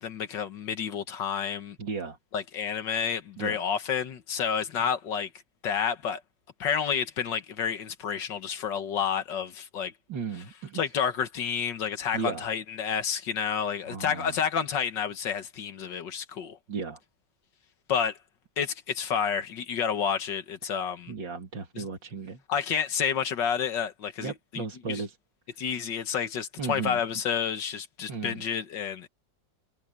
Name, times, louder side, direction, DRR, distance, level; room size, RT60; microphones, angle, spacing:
voice 1, 0.0-1.8 2.3-5.3 5.6-6.2 6.6-9.9 10.7-16.6 17.9-18.2 18.6-21.1 21.8-21.9 22.5-25.0 25.6-29.1, left 7 dB, 75° left, 2.0 m, -30 dB
voice 2, 1.8-2.2 3.4-3.6 10.1-10.8 12.1-12.5 13.9-14.3 16.7-17.0 21.1-22.4 24.2-25.2 26.6-27.0 28.1-28.4, right 5 dB, 80° right, 3.1 m, -35 dB
omnidirectional pair, 2.0 m